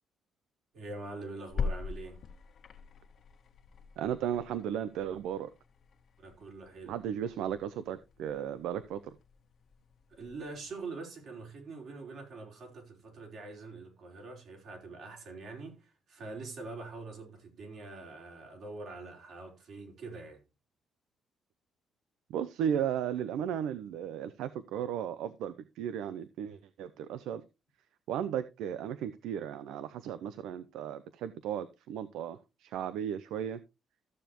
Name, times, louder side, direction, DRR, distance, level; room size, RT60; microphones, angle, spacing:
voice 1, 0.7-2.2 6.2-7.0 10.1-20.4, right 3 dB, 65° right, 4.3 m, -44 dB
sound 1, 1.5-10.8, left 5 dB, 60° left, 1.6 m, -43 dB
voice 2, 4.0-5.5 6.8-9.2 22.3-27.4 28.1-33.6, right 9 dB, 90° right, 0.6 m, -35 dB
14.0 x 7.0 x 3.0 m
cardioid pair, 90°, 0 cm